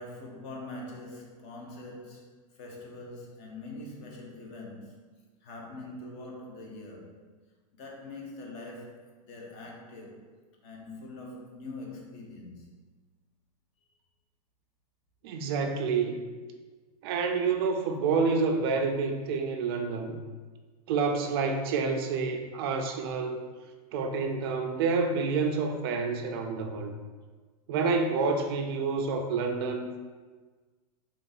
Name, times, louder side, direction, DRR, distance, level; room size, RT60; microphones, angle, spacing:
voice 1, 0.0-7.2 7.7-10.2 10.6-12.8, left 2 dB, 30° left, 0 dB, 0.7 m, -44 dB
voice 2, 15.2-16.2 17.0-20.2 20.9-23.4 23.9-26.9 27.7-30.0, right 4 dB, 40° right, 4 dB, 0.4 m, -28 dB
3.5 x 2.6 x 3.9 m, 1.4 s
supercardioid pair, 165°, 20 cm